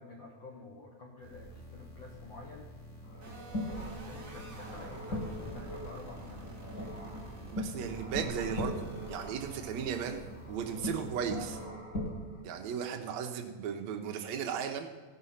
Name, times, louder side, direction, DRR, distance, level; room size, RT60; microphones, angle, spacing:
voice 1, 0.0-2.7 3.2-7.0, left 2 dB, 85° left, -1 dB, 1.0 m, -50 dB
sound 1, 1.2-11.6, equal, 65° left, 4.0 m, -50 dB
sound 2, 3.0-12.4, left 1 dB, 35° left, 1.3 m, -40 dB
sound 3, 3.2-9.3, right 3 dB, 30° right, 1.0 m, -49 dB
voice 2, 7.5-10.2 10.5-11.6 12.4-14.9, right 7 dB, 80° right, 4 dB, 1.6 m, -36 dB
16.0 x 5.7 x 5.6 m, 1.4 s
omnidirectional pair, 4.2 m